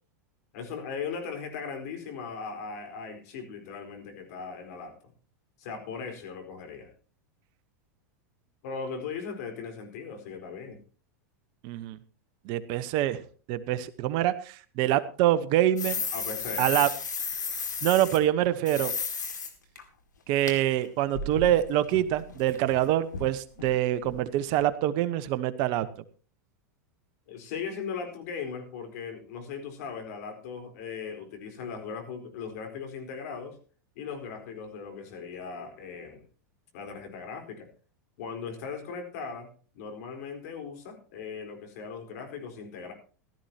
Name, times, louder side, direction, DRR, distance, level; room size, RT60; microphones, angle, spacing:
voice 1, 0.5-5.0 5.6-6.9 8.6-10.8 16.1-16.7 27.3-33.6 34.0-36.2 36.7-37.7 38.2-39.5 39.7-42.9, left 5 dB, 65° left, 4 dB, 4.3 m, -38 dB
voice 2, 11.6-12.0 12.5-13.2 13.5-16.0 16.6-16.9 17.8-18.9 20.3-25.9, right 13 dB, 50° right, 13 dB, 1.1 m, -25 dB
sound 1, 15.8-18.2 18.6-19.5 19.7-19.8 20.5-20.6 20.8-22.8 23.1-23.3 23.6-23.7 24.0-24.2 24.5-24.6, left 5 dB, 90° left, 2.3 m, -33 dB
16.5 x 13.0 x 2.9 m, 0.39 s
hypercardioid pair, 100°, 9 cm